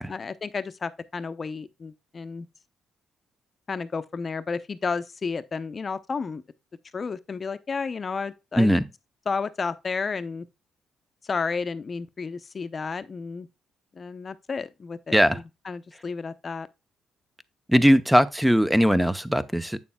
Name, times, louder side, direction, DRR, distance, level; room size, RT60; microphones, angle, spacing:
voice 1, 0.1-2.5 3.7-6.4 6.9-8.7 9.3-10.5 11.2-13.5 13.9-16.7, left 5 dB, 35° left, 0.7 m, -32 dB
voice 2, 17.7-19.8, equal, 5° right, 0.8 m, -20 dB
8.6 x 6.9 x 2.3 m
cardioid pair, 90°, 0 cm